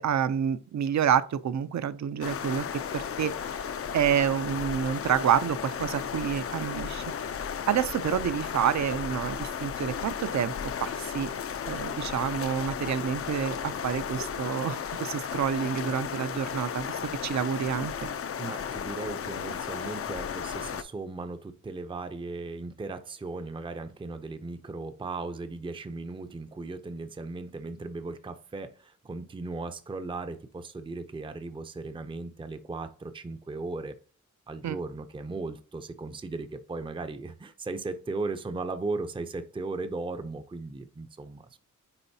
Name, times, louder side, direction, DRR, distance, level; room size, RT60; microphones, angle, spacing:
voice 1, 0.0-3.3 3.9-7.0 7.7-10.5 10.8-11.3 11.7-18.1 34.6-34.8, right 8 dB, 60° right, 0.5 m, -28 dB
sound 1, 2.2-20.8, left 7 dB, 45° left, 0.4 m, -34 dB
voice 2, 18.4-33.9 34.5-41.6, right 3 dB, 15° right, 0.5 m, -37 dB
9.7 x 3.9 x 2.7 m
wide cardioid pair, 150°, 31 cm